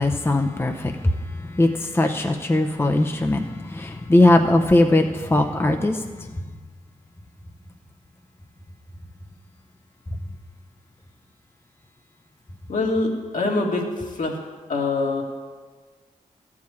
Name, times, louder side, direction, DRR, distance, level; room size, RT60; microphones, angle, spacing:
voice 1, 0.0-6.3, left 1 dB, 15° left, 5 dB, 0.6 m, -20 dB
voice 2, 12.7-13.9 14.2-14.4 14.7-15.2, left 3 dB, 65° left, -1 dB, 1.9 m, -24 dB
13.0 x 4.7 x 8.4 m, 1.4 s
wide cardioid pair, 80°, 14 cm